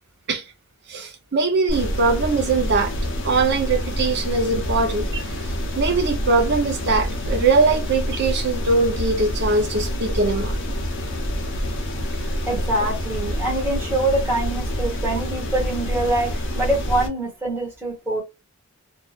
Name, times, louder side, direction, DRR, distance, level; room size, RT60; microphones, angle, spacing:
voice 1, 0.9-2.9 3.2-5.2 5.8-10.6, right 3 dB, 55° right, 0.7 m, -21 dB
sound 1, 1.7-17.1, equal, 60° left, 0.9 m, -27 dB
voice 2, 12.4-18.2, right 1 dB, 10° right, 1.3 m, -24 dB
2.7 x 2.6 x 2.4 m
head